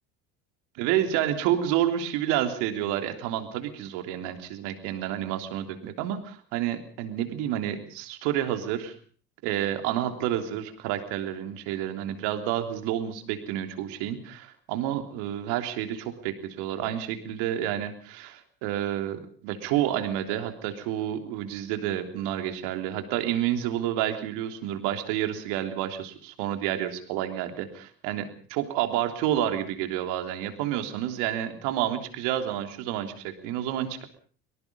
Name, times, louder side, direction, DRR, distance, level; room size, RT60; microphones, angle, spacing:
voice 1, 0.8-8.9 9.4-34.1, right 11 dB, 75° right, 7 dB, 3.4 m, -29 dB
25.0 x 19.5 x 5.4 m, 0.44 s
hypercardioid pair, 75°, 40 cm